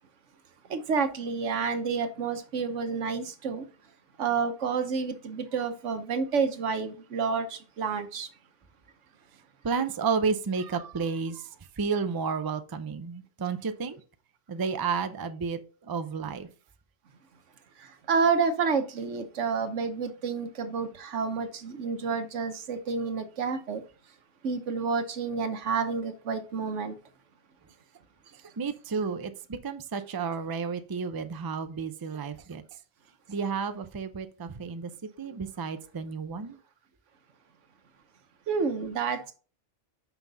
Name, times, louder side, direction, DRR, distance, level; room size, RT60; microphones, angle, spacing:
voice 1, 0.7-3.6 4.2-8.3 18.1-23.8 24.4-26.9 38.5-39.3, right 5 dB, 90° right, 1.3 m, -29 dB
voice 2, 9.6-14.0 14.5-16.5 28.6-32.6 33.3-34.9 35.2-36.6, right 5 dB, 30° right, 0.4 m, -31 dB
6.0 x 5.6 x 3.9 m
omnidirectional pair, 1.2 m